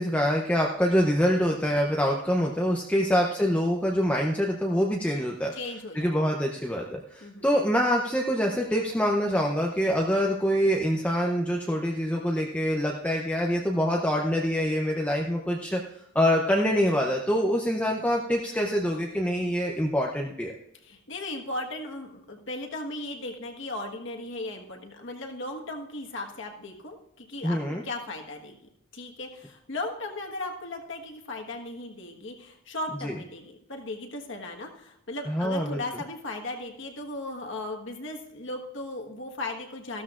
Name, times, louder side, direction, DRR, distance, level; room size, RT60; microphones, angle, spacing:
voice 1, 0.0-5.5 5.9-20.5 27.4-27.8 33.0-33.1 35.3-35.8, equal, 5° left, 0 dB, 0.6 m, -25 dB
voice 2, 5.5-6.4 7.2-7.5 20.8-28.6 28.9-40.0, left 2 dB, 55° left, 2 dB, 1.4 m, -37 dB
14.5 x 13.0 x 2.5 m, 0.81 s
head